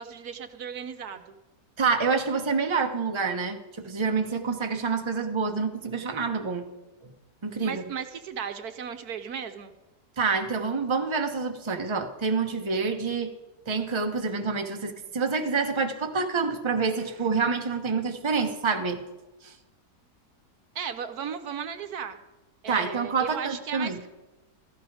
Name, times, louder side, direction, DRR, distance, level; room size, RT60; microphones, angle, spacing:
voice 1, 0.0-1.4 7.6-9.7 20.7-22.2 22.6-24.1, right 7 dB, 70° right, 9 dB, 1.4 m, -36 dB
voice 2, 1.8-6.7 7.0-7.1 7.4-7.8 10.2-13.3 13.7-19.0 19.4-19.5 22.7-24.0, right 4 dB, 20° right, 5 dB, 1.1 m, -27 dB
16.5 x 14.5 x 4.9 m, 1.1 s
omnidirectional pair, 1.7 m